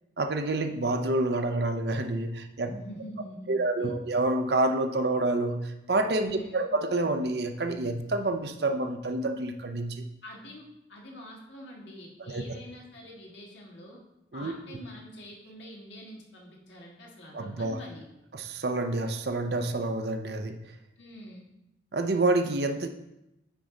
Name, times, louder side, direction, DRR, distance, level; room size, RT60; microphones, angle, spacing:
voice 1, 0.2-2.7 3.5-10.0 12.3-12.4 14.3-14.8 17.3-17.8 18.3-20.6 21.9-22.9, right 2 dB, 65° right, 7 dB, 0.7 m, -28 dB
voice 2, 2.6-4.0 6.2-6.7 10.2-14.0 14.3-18.1 21.0-21.5, equal, 85° left, -1 dB, 1.7 m, -45 dB
9.2 x 4.6 x 3.8 m, 0.90 s
head